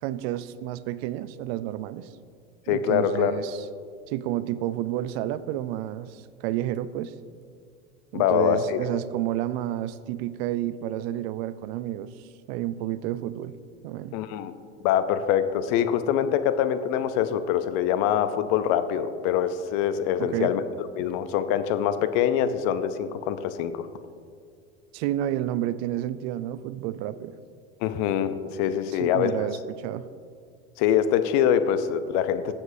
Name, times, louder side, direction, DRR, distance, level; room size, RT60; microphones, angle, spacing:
voice 1, 0.0-2.1 2.7-3.7 4.1-7.1 8.1-13.6 13.8-14.2 20.2-20.5 24.9-27.3 28.7-30.1, right 13 dB, 60° right, 15 dB, 0.5 m, -30 dB
voice 2, 2.7-3.4 8.1-8.8 14.1-14.5 14.8-23.9 27.8-29.4 30.8-32.5, left 9 dB, 55° left, 11 dB, 0.7 m, -24 dB
15.0 x 7.3 x 2.7 m, 2.1 s
hypercardioid pair, 90°, 36 cm